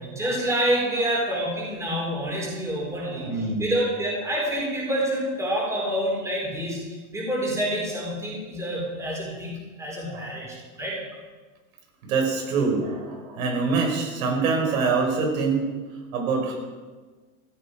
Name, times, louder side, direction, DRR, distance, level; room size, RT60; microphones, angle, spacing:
voice 1, 0.0-6.8 7.1-11.0, right 1 dB, 5° right, -3 dB, 4.0 m, -27 dB
voice 2, 2.9-3.7 10.1-10.3 12.0-15.7 16.1-16.5, right 4 dB, 75° right, 1 dB, 5.1 m, -25 dB
15.5 x 13.5 x 5.0 m, 1.3 s
supercardioid pair, 155°, 41 cm